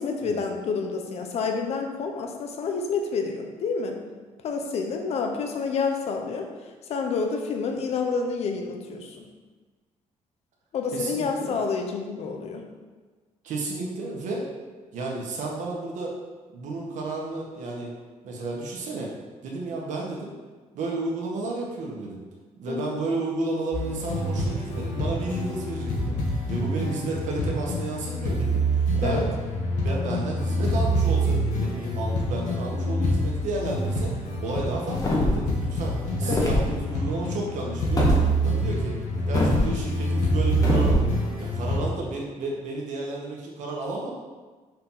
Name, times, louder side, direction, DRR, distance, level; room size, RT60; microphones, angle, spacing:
voice 1, 0.0-4.0 4.4-9.3 10.7-12.7 22.7-23.0 28.9-29.3 32.7-33.1 36.2-36.5, left 5 dB, 55° left, 4 dB, 0.9 m, -29 dB
voice 2, 10.9-11.6 13.4-14.5 14.9-16.1 16.5-17.9 18.2-19.1 19.4-20.4 20.7-22.2 22.6-29.3 29.8-38.1 38.4-39.0 39.3-41.1 41.4-44.1, right 2 dB, 75° right, -2 dB, 1.8 m, -32 dB
sound 1, 23.7-41.9, right 1 dB, 75° left, 1.8 m, -26 dB
sound 2, 34.9-35.5 36.2-36.7 38.0-38.2 39.3-39.7 40.6-41.0, left 2 dB, 25° left, 1.4 m, -22 dB
6.6 x 4.7 x 5.7 m, 1.3 s
cardioid pair, 170°, 13 cm